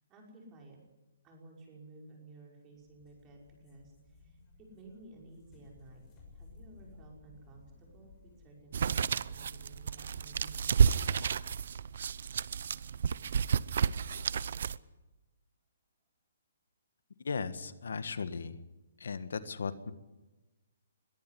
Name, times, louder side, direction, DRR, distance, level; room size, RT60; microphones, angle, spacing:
voice 1, 0.1-0.8 1.2-3.9 4.2-10.8, right 2 dB, 20° right, 0 dB, 5.7 m, -55 dB
sound 1, 2.8-8.7, left 3 dB, 15° left, 6.5 m, -57 dB
sound 2, 8.7-14.8, right 7 dB, 60° right, 0.7 m, -30 dB
voice 2, 17.2-18.6 19.0-19.9, left 5 dB, 80° left, 12 dB, 1.5 m, -36 dB
22.0 x 14.0 x 9.9 m, 1.1 s
hypercardioid pair, 160°, 0 cm